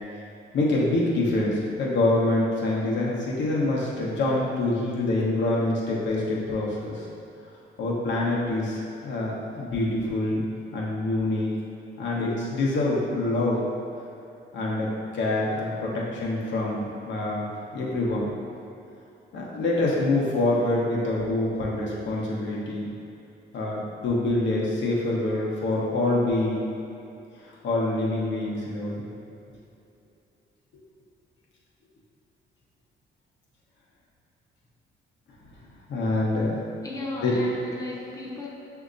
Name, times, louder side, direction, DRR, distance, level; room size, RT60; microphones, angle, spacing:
voice 1, 0.5-7.1 7.8-10.4 10.7-11.5 12.0-13.6 14.5-17.5 17.7-18.3 19.3-22.9 23.5-26.7 27.4-29.0 35.9-36.6 37.2-37.3, left 2 dB, 65° left, -4 dB, 1.0 m, -26 dB
voice 2, 36.8-38.5, left 2 dB, 15° left, -4 dB, 0.8 m, -35 dB
6.4 x 2.8 x 2.5 m, 2.7 s
cardioid pair, 90°, 20 cm